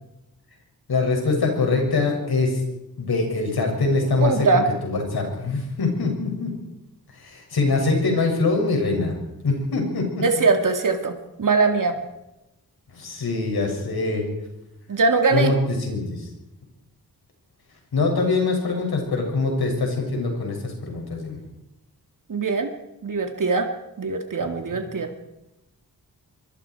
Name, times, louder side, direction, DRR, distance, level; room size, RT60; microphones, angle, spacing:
voice 1, 0.9-2.6 3.0-4.5 4.8-6.5 7.2-9.1 9.4-10.2 12.9-14.2 15.3-16.3 17.9-21.4 24.7-24.8, left 3 dB, 90° left, 1 dB, 7.1 m, -23 dB
voice 2, 4.2-4.7 10.2-11.1 11.4-12.0 14.9-15.5 22.3-22.7 23.0-23.7 24.0-25.1, right 4 dB, 60° right, 4 dB, 2.3 m, -21 dB
26.0 x 24.0 x 4.8 m, 0.93 s
wide cardioid pair, 90°, 37 cm